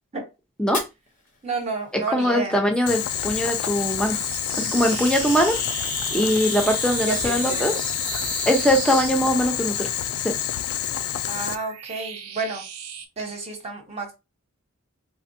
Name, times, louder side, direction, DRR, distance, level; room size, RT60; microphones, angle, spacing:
Fire, 0.6-2.6, left 4 dB, 40° left, 0.7 m, -38 dB
voice 1, 1.4-2.6 7.0-7.8 11.3-12.6 13.2-14.1, right 3 dB, 30° right, 2 dB, 0.8 m, -30 dB
voice 2, 2.1-4.2 4.6-5.6 6.1-7.9 8.5-9.9 10.2-10.3, equal, 5° left, 3 dB, 0.6 m, -21 dB
sound 1, 2.7-10.0 10.9-13.1, right 7 dB, 90° right, 0.5 m, -35 dB
Boiling, 2.9-11.5, left 11 dB, 75° left, 0.3 m, -28 dB
3.4 x 2.2 x 2.6 m, 0.25 s
head